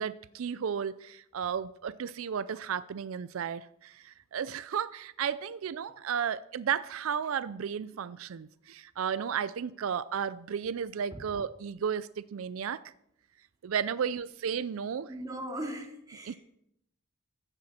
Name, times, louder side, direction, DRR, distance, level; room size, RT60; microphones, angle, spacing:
voice 1, 0.0-12.8 13.6-15.1 16.3-16.4, right 7 dB, 80° right, 0.4 m, -33 dB
voice 2, 15.1-16.4, right 1 dB, 20° right, 2.4 m, -38 dB
15.0 x 11.5 x 4.3 m
head